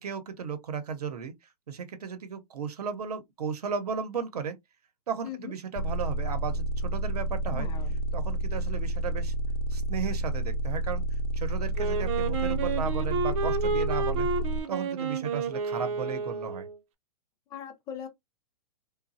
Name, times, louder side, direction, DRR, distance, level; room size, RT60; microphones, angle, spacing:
voice 1, 0.0-1.3 1.7-4.6 5.1-7.7 8.1-9.3 9.7-11.0 11.3-14.3 14.7-16.7, right 6 dB, 90° right, 0.8 m, -35 dB
sound 1, 5.8-14.6, right 1 dB, 85° left, 0.7 m, -30 dB
voice 2, 7.5-8.0 17.5-18.1, left 9 dB, 20° left, 0.4 m, -40 dB
Wind instrument woodwind instrument, 11.8-16.8, right 4 dB, 55° right, 0.7 m, -30 dB
3.0 x 2.2 x 2.6 m
hypercardioid pair, 145°, 19 cm